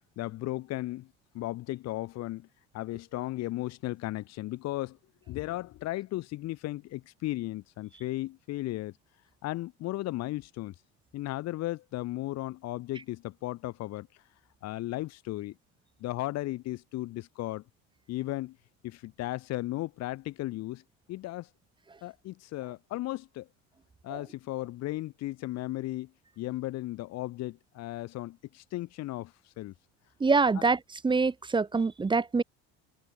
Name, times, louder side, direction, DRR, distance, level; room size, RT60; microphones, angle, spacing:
voice 1, 0.2-1.1 1.3-2.5 2.7-5.0 5.3-8.9 9.4-10.7 11.1-14.1 14.6-15.5 16.0-17.6 18.1-18.6 18.8-20.8 21.1-21.5 22.0-23.5 24.0-26.1 26.4-29.7 30.5-30.6, left 17 dB, 50° left, 5.2 m, -35 dB
voice 2, 30.2-30.8 31.0-32.4, right 4 dB, 15° right, 3.1 m, -25 dB
cardioid pair, 140°, 32 cm